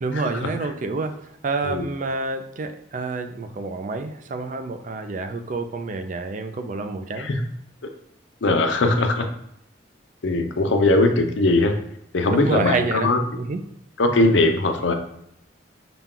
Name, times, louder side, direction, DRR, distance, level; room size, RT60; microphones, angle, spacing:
voice 1, 0.0-7.3 12.3-13.1 13.4-13.6, right 3 dB, 45° right, 8 dB, 0.4 m, -28 dB
voice 2, 8.4-9.3 10.2-11.8 12.1-13.2 14.0-14.9, left 2 dB, 80° left, 5 dB, 0.6 m, -20 dB
5.7 x 2.3 x 3.7 m, 0.75 s
head